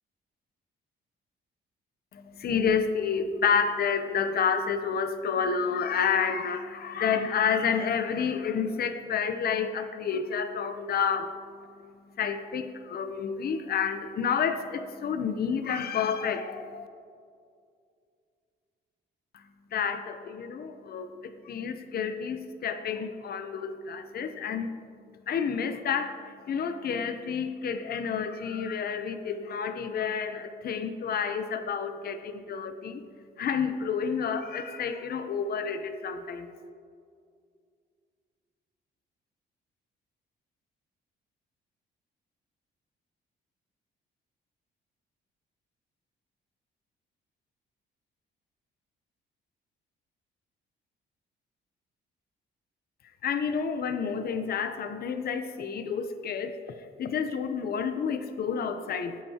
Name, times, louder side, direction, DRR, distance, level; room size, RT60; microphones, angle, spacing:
voice 1, 2.1-11.3 12.2-16.9 19.7-24.7 25.3-26.2 26.5-33.0 33.4-36.5 53.2-56.6 57.0-59.2, left 6 dB, 50° left, 9 dB, 0.7 m, -29 dB
16.5 x 8.7 x 2.9 m, 2.2 s
cardioid pair, 90°, 20 cm